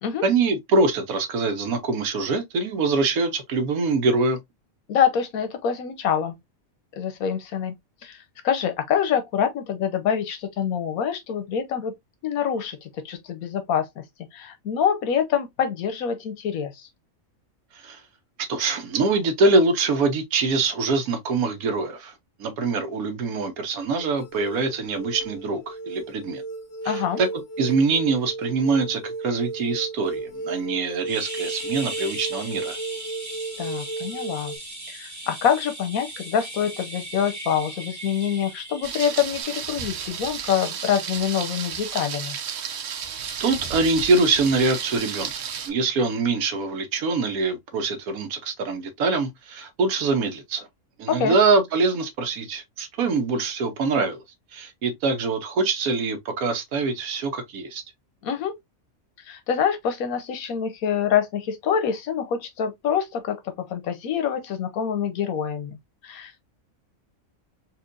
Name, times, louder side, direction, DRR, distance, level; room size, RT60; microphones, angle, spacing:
voice 1, 0.2-4.4 17.7-18.0 18.5-22.1 22.4-26.4 26.8-27.3 27.6-32.8 43.4-45.3 45.7-50.7 51.0-54.2 54.5-57.8, right 3 dB, 85° right, 1.2 m, -24 dB
voice 2, 4.9-6.4 7.0-7.7 8.0-11.9 12.2-13.9 14.3-16.9 26.8-27.2 33.6-34.5 34.9-42.4 51.1-51.4 58.2-58.5 59.3-65.8 66.0-66.5, left 8 dB, 85° left, 1.3 m, -26 dB
sound 1, 24.0-34.6, right 3 dB, 60° left, 0.7 m, -34 dB
sound 2, 31.1-39.4, right 2 dB, 15° right, 0.7 m, -38 dB
Thunder, 38.8-45.7, right 7 dB, 60° right, 0.8 m, -33 dB
4.3 x 2.5 x 2.5 m
omnidirectional pair, 1.5 m